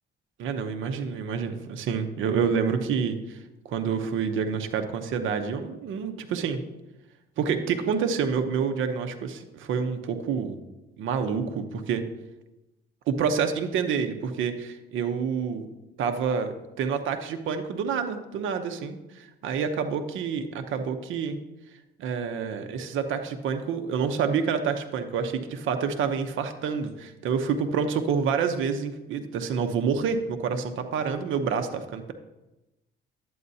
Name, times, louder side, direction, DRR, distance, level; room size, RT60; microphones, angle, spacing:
voice 1, 0.4-6.6 7.4-10.6 11.0-12.0 13.1-15.7 16.0-21.4 22.0-32.1, right 6 dB, 80° right, 7 dB, 0.8 m, -28 dB
11.0 x 8.6 x 2.7 m, 0.99 s
cardioid pair, 90°, 20 cm